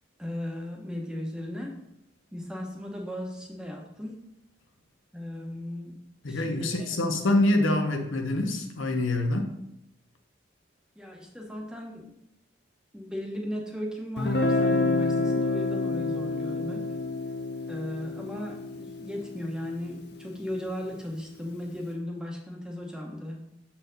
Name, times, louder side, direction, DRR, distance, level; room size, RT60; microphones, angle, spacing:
voice 1, 0.2-1.8 2.3-4.2 5.1-6.0 6.3-6.8 11.0-12.1 12.9-16.8 17.7-23.5, left 1 dB, 5° right, 0 dB, 0.9 m, -36 dB
voice 2, 6.2-9.5, left 1 dB, 85° left, 3 dB, 0.9 m, -25 dB
Guitar, 14.2-19.9, left 3 dB, 55° left, 0.6 m, -28 dB
6.8 x 4.3 x 3.9 m, 0.81 s
head